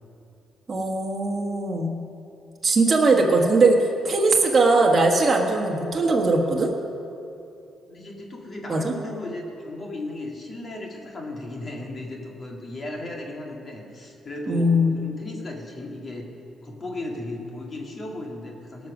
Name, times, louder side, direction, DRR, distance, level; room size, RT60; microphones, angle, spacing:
voice 1, 0.7-1.9 2.6-6.7 8.7-8.9 14.5-15.0, right 2 dB, 30° right, -1 dB, 1.6 m, -20 dB
voice 2, 7.9-16.3 16.6-18.9, left 2 dB, 40° left, 0 dB, 2.2 m, -35 dB
18.0 x 6.3 x 6.2 m, 2.7 s
cardioid pair, 90°, 0 cm